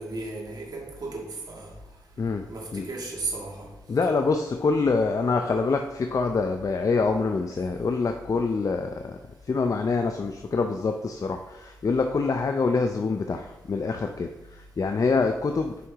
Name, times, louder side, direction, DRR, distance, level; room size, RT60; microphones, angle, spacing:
voice 1, 0.0-1.7 2.5-3.7, right 3 dB, 60° right, -3 dB, 2.0 m, -35 dB
voice 2, 2.2-2.9 3.9-9.2 9.4-15.9, left 4 dB, 45° left, 5 dB, 0.5 m, -26 dB
5.8 x 5.5 x 3.5 m, 1.0 s
cardioid pair, 55°, 8 cm